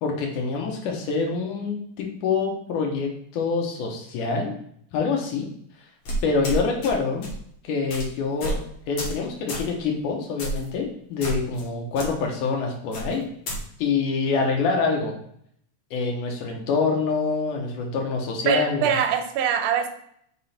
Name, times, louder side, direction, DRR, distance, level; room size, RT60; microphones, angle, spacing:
voice 1, 0.0-4.5 4.9-5.5 6.2-7.3 7.6-8.6 8.9-13.3 13.8-15.1 15.9-18.9, left 4 dB, 75° left, 1 dB, 2.6 m, -26 dB
sound 1, 6.0-6.9 7.2-7.4 7.9-8.0 8.4-8.6 9.0-9.2 9.5-9.7 10.4-10.7 11.2-11.6 11.9-12.1 12.9-13.6, right 1 dB, 55° left, 1.5 m, -30 dB
voice 2, 18.5-19.9, right 7 dB, 80° right, 6 dB, 2.0 m, -23 dB
6.0 x 3.7 x 4.2 m, 0.67 s
omnidirectional pair, 3.7 m